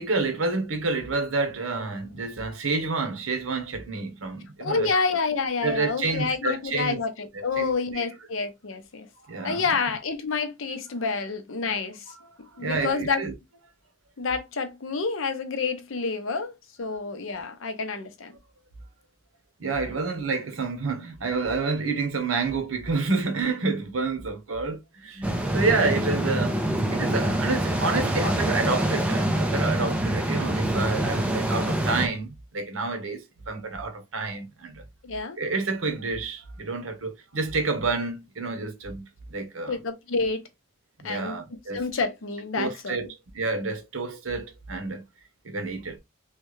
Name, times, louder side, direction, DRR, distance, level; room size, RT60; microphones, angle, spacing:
voice 1, 0.0-4.9 5.6-7.0 7.3-8.0 9.3-9.6 12.5-13.3 19.6-26.6 26.9-34.8 35.4-39.8 41.0-41.8 42.6-45.1 45.4-46.0, right 3 dB, 80° right, 0.9 m, -29 dB
voice 2, 4.6-9.1 9.4-12.1 12.6-13.3 14.2-18.3 28.2-28.3 35.0-35.4 39.7-40.4 41.0-43.0, left 4 dB, 75° left, 0.6 m, -28 dB
sound 1, 25.2-32.1, right 1 dB, 5° right, 0.6 m, -25 dB
3.2 x 2.3 x 3.1 m
head